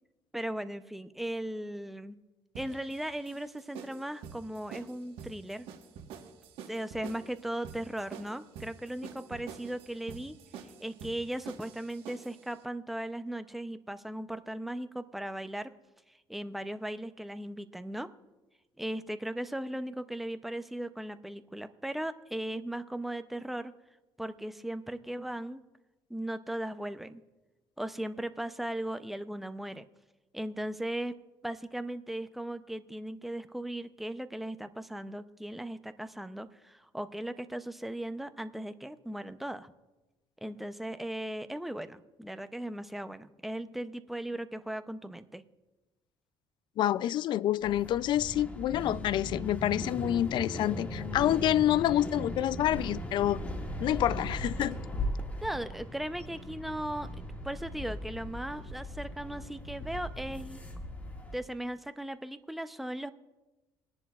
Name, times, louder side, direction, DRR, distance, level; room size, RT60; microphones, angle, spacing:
voice 1, 0.3-2.2 2.6-5.7 6.7-10.4 10.8-15.7 16.3-18.1 18.8-23.7 24.2-25.6 26.1-27.2 27.8-29.8 30.3-31.2 31.4-39.7 40.4-45.4 55.4-57.1 57.4-60.6 61.3-63.1, right 1 dB, ahead, 0.5 m, -37 dB
sound 1, 2.5-12.4, right 7 dB, 80° right, 1.3 m, -47 dB
voice 2, 46.8-53.4 53.8-54.8, left 12 dB, 60° left, 0.3 m, -28 dB
sound 2, 47.6-61.3, equal, 15° left, 1.8 m, -38 dB
20.5 x 10.5 x 2.4 m
cardioid pair, 110°, 9 cm